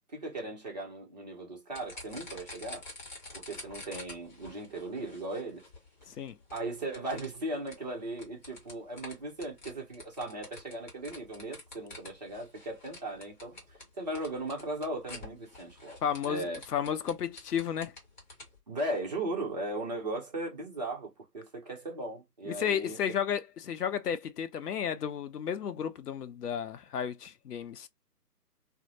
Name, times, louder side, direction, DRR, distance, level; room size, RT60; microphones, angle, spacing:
voice 1, 0.1-2.9 3.3-5.6 6.5-16.6 18.7-23.0, right 2 dB, 25° right, 0.7 m, -37 dB
sound 1, 1.7-18.6, left 2 dB, 30° left, 0.9 m, -49 dB
voice 2, 16.0-16.5 16.7-17.9 22.5-27.9, left 8 dB, 70° left, 0.6 m, -33 dB
2.6 x 2.0 x 2.9 m
figure-of-eight pair, 145°, 49 cm